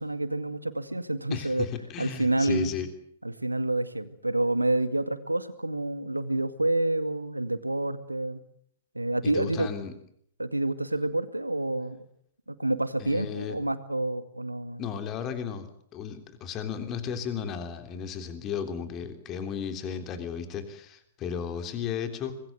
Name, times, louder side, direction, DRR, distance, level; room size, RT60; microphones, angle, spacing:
voice 1, 0.0-1.7 2.0-2.7 3.2-8.4 8.9-9.7 10.4-12.0 12.5-14.8, right 2 dB, 85° right, 11 dB, 2.1 m, -28 dB
voice 2, 1.3-2.9 9.2-9.9 13.0-13.6 14.8-15.7 15.9-22.4, left 7 dB, 25° left, 8 dB, 3.4 m, -34 dB
25.5 x 22.0 x 8.0 m, 0.68 s
figure-of-eight pair, 110°, 0 cm